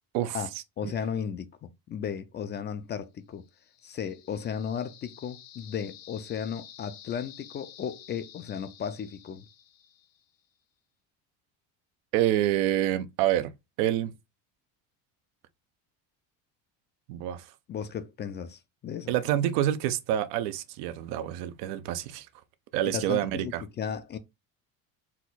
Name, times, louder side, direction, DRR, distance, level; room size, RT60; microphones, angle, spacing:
voice 1, 0.8-3.5 3.8-9.4 17.7-19.1 22.9-24.2, left 8 dB, 30° left, 0.4 m, -35 dB
sound 1, 3.4-10.3, left 10 dB, 60° left, 0.9 m, -51 dB
voice 2, 12.1-13.5 13.8-14.1 17.1-17.5 19.1-22.3 22.7-23.6, right 12 dB, 85° right, 0.7 m, -27 dB
4.3 x 2.3 x 3.9 m
cardioid pair, 130°, 37 cm